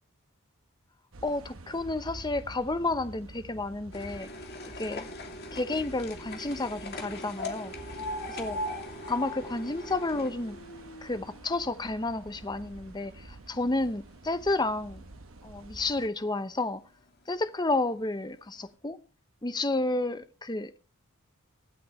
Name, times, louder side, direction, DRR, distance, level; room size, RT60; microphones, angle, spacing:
sound 1, 1.1-16.1, right 2 dB, 70° right, 1.0 m, -48 dB
voice 1, 1.2-4.3 4.8-5.0 5.5-8.0 8.3-8.6 9.1-10.6 11.0-15.1 15.4-16.8 17.3-19.0 19.4-20.8, left 2 dB, 20° left, 0.8 m, -31 dB
sound 2, 3.9-12.2 12.5-13.4 14.1-14.2 14.5-14.6 14.9-15.0 15.8-16.0 16.5-16.6 17.3-17.4 17.9-18.0, left 1 dB, 50° left, 2.7 m, -40 dB
24.5 x 8.5 x 3.2 m
head